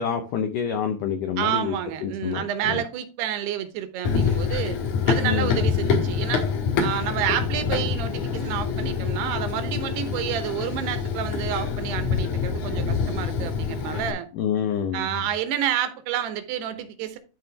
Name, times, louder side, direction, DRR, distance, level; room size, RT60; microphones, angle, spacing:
voice 1, 0.0-1.8 2.0-2.8 5.2-5.6 14.3-15.1, left 7 dB, 75° left, 2.0 m, -27 dB
voice 2, 1.4-4.8 5.1-6.5 6.8-14.3 14.9-17.2, right 10 dB, 80° right, 3.1 m, -29 dB
Run, 4.0-14.1, left 6 dB, 60° left, 2.3 m, -26 dB
12.5 x 4.3 x 3.5 m
omnidirectional pair, 4.7 m